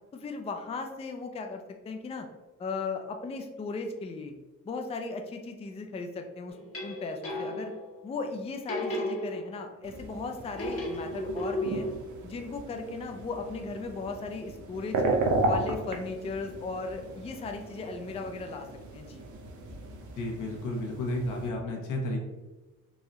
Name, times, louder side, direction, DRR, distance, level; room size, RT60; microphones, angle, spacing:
voice 1, 0.1-2.3 2.6-4.3 4.6-6.6 6.8-7.7 8.0-11.9 12.2-15.1 15.5-18.7 18.9-19.3, left 3 dB, 20° left, 5 dB, 0.4 m, -37 dB
sound 1, 6.5-7.9 8.7-9.8 10.5-12.0, left 1 dB, 50° left, 1.1 m, -34 dB
sound 2, 9.8-21.5, right 2 dB, 75° right, 0.8 m, -35 dB
voice 2, 20.2-22.2, left 1 dB, 80° left, 0 dB, 1.0 m, -32 dB
3.8 x 2.7 x 3.0 m, 1.2 s
cardioid pair, 90°, 30 cm